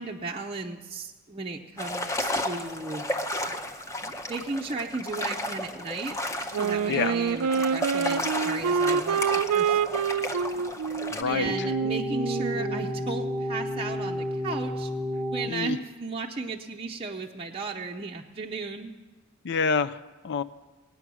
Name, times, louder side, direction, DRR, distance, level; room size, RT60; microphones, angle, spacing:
voice 1, 0.0-3.0 4.3-6.2 6.6-10.1 11.3-14.9 15.3-18.9, right 3 dB, 25° right, 0 dB, 0.6 m, -35 dB
sound 1, 1.8-11.2, left 1 dB, 15° left, 0.7 m, -33 dB
Wind instrument woodwind instrument, 6.5-13.1, right 6 dB, 85° right, 0.5 m, -27 dB
voice 2, 11.1-11.7 15.5-15.8 19.4-20.4, left 5 dB, 50° left, 12 dB, 0.4 m, -27 dB
sound 2, 11.5-15.5, left 1 dB, 5° right, 1.1 m, -31 dB
18.5 x 9.2 x 6.1 m, 1.3 s
head